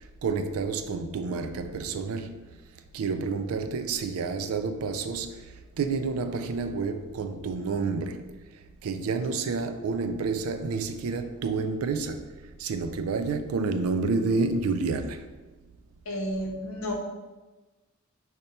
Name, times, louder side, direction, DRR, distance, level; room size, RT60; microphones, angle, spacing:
voice 1, 0.2-2.4 2.9-5.3 5.8-8.2 8.8-12.2 12.6-15.2, right 4 dB, 90° right, 0.4 m, -29 dB
voice 2, 16.1-16.9, equal, 70° left, 0.8 m, -31 dB
5.2 x 2.2 x 4.2 m
head